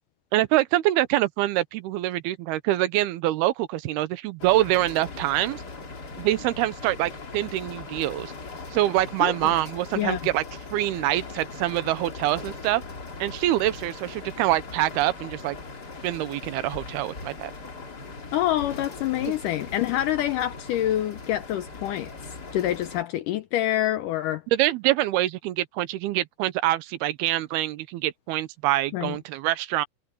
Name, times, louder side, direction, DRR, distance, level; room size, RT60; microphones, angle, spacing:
voice 1, 0.3-5.6 6.2-8.3 8.7-10.4 10.7-12.8 13.2-15.6 16.0-17.5 24.5-29.9, right 15 dB, 90° right, 2.8 m, -25 dB
sound 1, 4.4-23.0, left 3 dB, 30° left, 2.5 m, -40 dB
voice 2, 9.2-9.5 10.0-10.2 18.3-22.1 22.5-24.4 28.9-29.2, left 13 dB, 80° left, 1.9 m, -26 dB
omnidirectional pair, 4.5 m